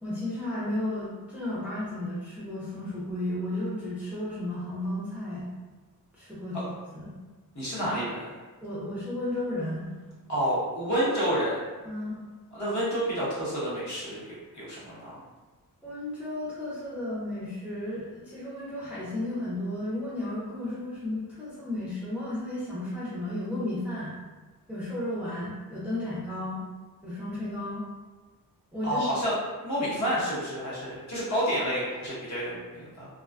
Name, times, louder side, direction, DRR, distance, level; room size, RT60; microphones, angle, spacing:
voice 1, 0.0-5.5 6.1-7.2 7.8-7.9 8.6-9.9 11.8-12.2 15.8-24.2 24.7-26.6 27.0-27.8 28.7-29.0 30.1-30.2, left 1 dB, 5° right, -9 dB, 0.4 m, -33 dB
voice 2, 7.5-8.2 10.3-11.6 12.5-15.2 28.8-29.3 29.6-33.1, equal, 50° left, -9 dB, 1.0 m, -29 dB
2.4 x 2.3 x 2.2 m, 1.3 s
wide cardioid pair, 170°, 36 cm